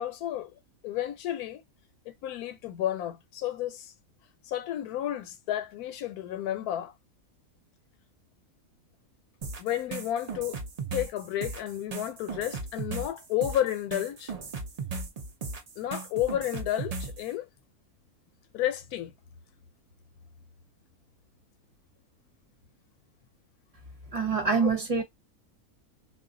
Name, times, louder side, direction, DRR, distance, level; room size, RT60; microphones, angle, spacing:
voice 1, 0.0-1.6 2.1-3.9 4.5-6.9 9.6-10.6 10.9-14.3 15.8-17.5 18.5-19.1 24.6-24.7, left 12 dB, 90° left, 1.1 m, -32 dB
sound 1, 9.4-17.3, right 4 dB, 85° right, 0.3 m, -37 dB
voice 2, 24.1-25.0, right 5 dB, 30° right, 0.7 m, -25 dB
2.4 x 2.3 x 3.7 m
omnidirectional pair, 1.6 m